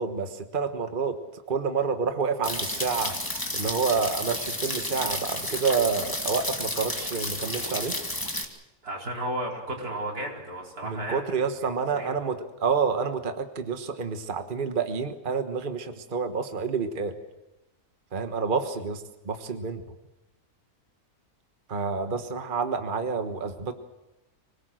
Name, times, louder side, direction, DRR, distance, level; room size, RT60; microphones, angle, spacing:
voice 1, 0.0-3.2 3.5-7.9 10.8-17.1 18.1-19.8 21.7-23.7, right 5 dB, 35° right, 7 dB, 1.4 m, -28 dB
sound 1, 2.4-8.4, left 1 dB, 15° left, 2.1 m, -31 dB
voice 2, 8.8-11.3 11.9-12.2, right 1 dB, 85° right, -1 dB, 5.1 m, -33 dB
25.5 x 18.5 x 7.7 m, 0.99 s
omnidirectional pair, 1.6 m